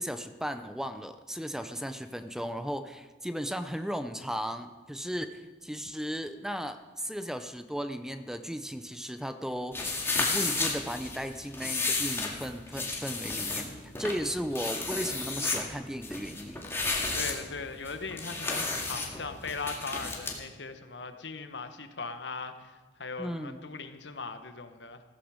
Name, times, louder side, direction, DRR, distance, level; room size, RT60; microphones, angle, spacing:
voice 1, 0.0-13.7 14.0-16.7 23.2-23.6, equal, 5° right, 9 dB, 0.6 m, -36 dB
sound 1, 9.7-20.4, left 3 dB, 15° left, 2.1 m, -33 dB
voice 2, 17.1-25.0, left 4 dB, 80° left, 8 dB, 1.2 m, -39 dB
15.5 x 14.0 x 5.0 m, 1.3 s
head